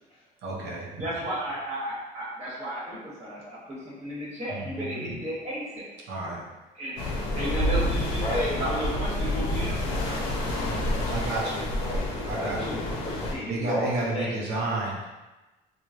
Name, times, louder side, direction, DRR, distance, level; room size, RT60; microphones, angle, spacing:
voice 1, 0.4-1.0 4.5-5.2 6.1-6.4 11.1-11.6 12.3-12.6 13.5-15.0, right 2 dB, 75° right, -3 dB, 0.6 m, -31 dB
voice 2, 1.0-5.9 6.7-7.0 7.3-10.0, equal, 40° right, -7 dB, 1.1 m, -33 dB
voice 3, 6.9-7.4 8.2-8.9 10.9-14.8, equal, 35° left, -5 dB, 0.9 m, -34 dB
sound 1, 7.0-13.3, left 1 dB, 90° left, 0.5 m, -29 dB
3.1 x 2.1 x 2.4 m, 1.1 s
cardioid pair, 110°, 17 cm